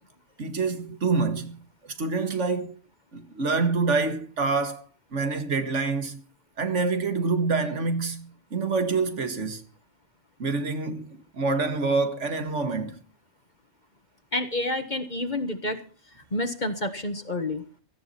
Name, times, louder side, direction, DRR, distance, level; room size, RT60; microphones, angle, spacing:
voice 1, 0.4-2.8 3.1-4.8 5.1-6.2 6.6-9.6 10.4-11.1 11.3-13.0, right 4 dB, 85° right, 2.1 m, -26 dB
voice 2, 14.3-15.8 16.3-17.6, left 1 dB, 40° left, 1.6 m, -29 dB
17.0 x 14.5 x 4.4 m
omnidirectional pair, 1.2 m